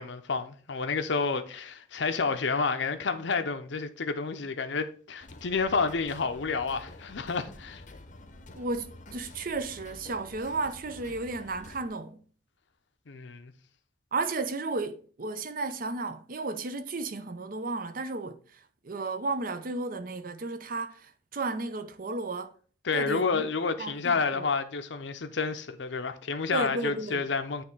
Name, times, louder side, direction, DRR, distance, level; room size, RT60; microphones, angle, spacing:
voice 1, 0.0-7.8 13.1-13.5 22.8-27.6, left 4 dB, 75° left, 0.7 m, -30 dB
sound 1, 5.2-11.9, left 2 dB, 40° left, 0.7 m, -49 dB
voice 2, 8.6-12.2 14.1-18.6 18.8-22.5 22.9-23.5 23.8-24.5 26.5-27.3, right 3 dB, 50° right, 0.6 m, -33 dB
8.5 x 3.2 x 4.6 m
head